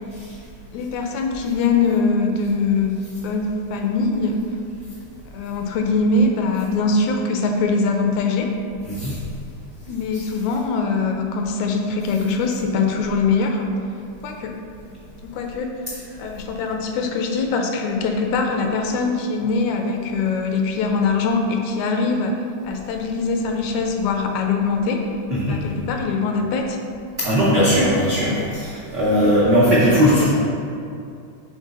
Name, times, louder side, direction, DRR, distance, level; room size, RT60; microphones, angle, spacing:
voice 1, 0.7-4.4 5.3-8.5 9.9-13.7 14.2-14.6 15.2-15.7 16.2-25.0 25.4-26.8 29.1-29.3 29.6-29.8 30.2-30.3, left 4 dB, 80° left, 3 dB, 1.8 m, -22 dB
voice 2, 27.2-30.3, equal, 75° right, -8 dB, 1.0 m, -18 dB
5.1 x 3.9 x 5.2 m, 2.5 s
omnidirectional pair, 3.4 m